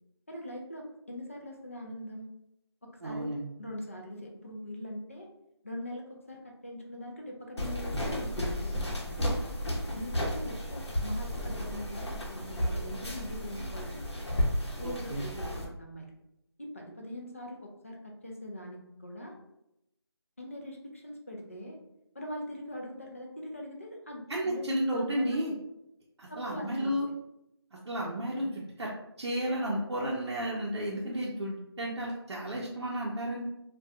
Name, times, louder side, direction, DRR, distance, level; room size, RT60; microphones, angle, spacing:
voice 1, 0.3-2.3 2.8-3.3 3.6-5.3 5.6-9.4 9.9-14.1 14.8-16.1 16.6-19.4 20.4-21.8 22.1-25.4 26.3-26.9, equal, 30° left, 0 dB, 0.3 m, -42 dB
voice 2, 3.0-3.4 14.8-15.2 24.3-25.5 26.2-27.1 27.9-28.9 29.2-33.4, equal, 70° right, -5 dB, 0.6 m, -32 dB
sound 1, 7.6-15.6, equal, 80° left, 0.8 m, -33 dB
2.6 x 2.2 x 2.3 m, 0.84 s
figure-of-eight pair, 170°, 14 cm